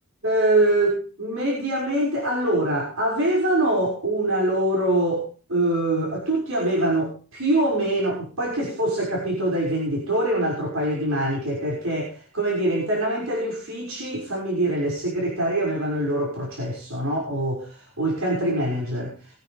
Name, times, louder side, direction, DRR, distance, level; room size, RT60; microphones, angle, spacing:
voice 1, 0.2-19.2, right 1 dB, 75° right, -3 dB, 6.2 m, -24 dB
23.0 x 10.0 x 3.3 m, 0.33 s
head